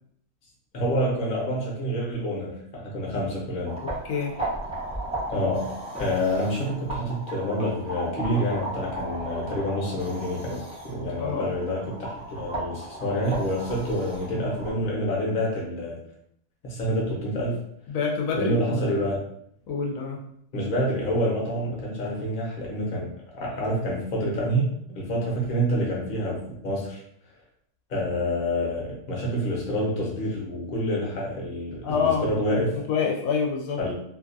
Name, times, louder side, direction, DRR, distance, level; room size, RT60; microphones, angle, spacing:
voice 1, 0.7-3.8 5.3-16.0 16.6-17.6 18.3-19.2 20.5-23.1 23.3-27.0 27.9-32.8 33.8-33.9, equal, 45° left, -3 dB, 0.9 m, -27 dB
sound 1, 3.6-14.7, right 1 dB, 10° right, 0.4 m, -35 dB
voice 2, 3.8-4.4 11.2-11.5 17.9-19.1 19.7-20.2 31.8-32.3 32.9-33.8, left 5 dB, 80° left, 0 dB, 1.0 m, -27 dB
2.7 x 2.3 x 2.6 m, 0.69 s
omnidirectional pair, 1.4 m